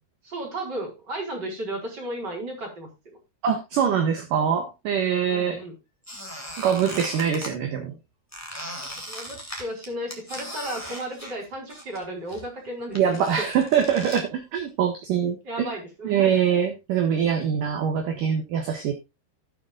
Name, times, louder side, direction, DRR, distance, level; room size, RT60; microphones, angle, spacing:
voice 1, 0.2-2.9 5.2-5.7 9.1-13.5 15.4-16.4, right 1 dB, 25° right, 1 dB, 4.7 m, -34 dB
voice 2, 3.4-5.6 6.6-8.0 12.9-15.7 16.0-18.9, right 8 dB, 60° right, 5 dB, 2.7 m, -23 dB
Squeak, 6.0-7.5 8.3-12.0 12.3-14.2, equal, 5° left, 1.9 m, -38 dB
18.5 x 7.1 x 2.4 m, 0.24 s
omnidirectional pair, 5.0 m